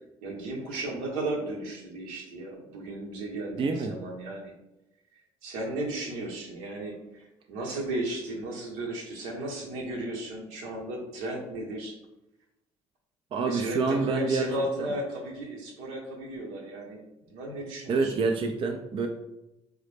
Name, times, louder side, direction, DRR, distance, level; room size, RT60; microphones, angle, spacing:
voice 1, 0.2-4.5 5.4-11.9 13.4-18.1, right 1 dB, 80° right, -1 dB, 0.9 m, -35 dB
voice 2, 3.5-3.9 13.3-14.5 14.8-14.9 17.9-19.1, right 4 dB, 40° right, 4 dB, 0.4 m, -27 dB
3.8 x 2.1 x 3.3 m, 0.92 s
hypercardioid pair, 60°, 14 cm